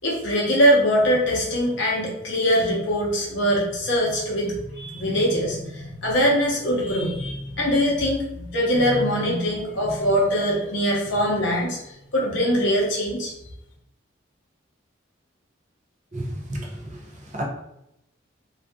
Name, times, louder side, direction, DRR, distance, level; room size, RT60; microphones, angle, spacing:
voice 1, 0.0-13.3, equal, 65° left, -3 dB, 0.8 m, -22 dB
voice 2, 16.1-17.4, right 1 dB, 40° right, -1 dB, 0.5 m, -32 dB
2.5 x 2.4 x 2.3 m, 0.84 s
head